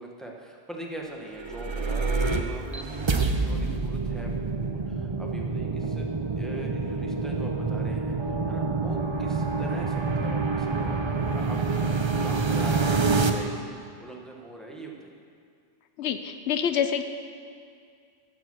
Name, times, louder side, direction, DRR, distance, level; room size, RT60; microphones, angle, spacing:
voice 1, 0.0-6.1 6.3-15.1, right 2 dB, ahead, -1 dB, 1.2 m, -42 dB
sound 1, 1.3-13.3, right 4 dB, 30° right, 0.6 m, -27 dB
voice 2, 16.0-17.0, left 8 dB, 90° left, 9 dB, 0.9 m, -26 dB
13.5 x 6.8 x 6.1 m, 2.3 s
omnidirectional pair, 1.1 m